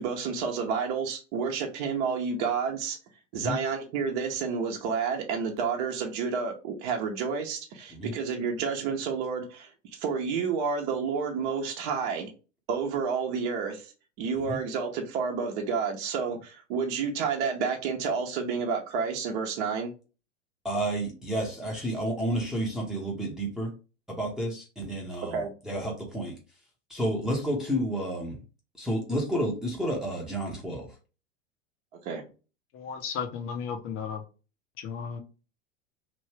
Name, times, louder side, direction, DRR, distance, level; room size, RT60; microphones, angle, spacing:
voice 1, 0.0-3.0 3.3-12.3 12.7-13.9 14.2-19.9 25.3-25.5 32.0-32.2, right 5 dB, 50° right, 1.0 m, -30 dB
voice 2, 20.6-23.7 24.1-26.4 26.9-28.4 28.8-30.9, right 1 dB, ahead, 0.9 m, -31 dB
voice 3, 32.7-34.2 34.8-35.2, left 6 dB, 35° left, 0.9 m, -34 dB
3.1 x 2.7 x 3.2 m
hypercardioid pair, 100°, 36 cm